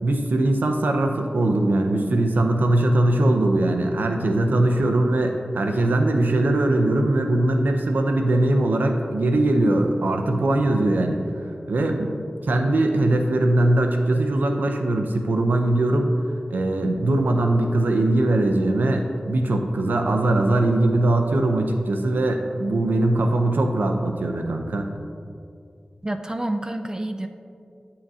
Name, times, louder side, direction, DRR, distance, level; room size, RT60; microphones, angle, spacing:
voice 1, 0.0-11.2 11.7-12.1 12.4-16.1 16.5-24.9, right 1 dB, 85° right, 4 dB, 0.6 m, -21 dB
voice 2, 26.0-27.3, right 1 dB, 20° right, 6 dB, 0.4 m, -28 dB
8.8 x 5.6 x 2.8 m, 2.4 s
cardioid pair, 45°, 3 cm